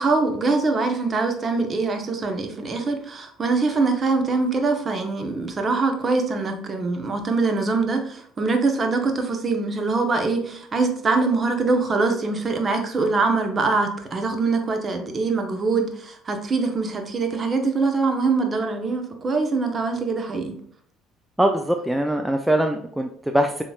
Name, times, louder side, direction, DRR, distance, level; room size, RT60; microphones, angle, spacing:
voice 1, 0.0-20.6, right 3 dB, 35° right, 4 dB, 1.0 m, -23 dB
voice 2, 21.4-23.6, right 1 dB, 5° right, 5 dB, 0.5 m, -22 dB
6.8 x 3.2 x 2.4 m, 0.62 s
hypercardioid pair, 65°, 0 cm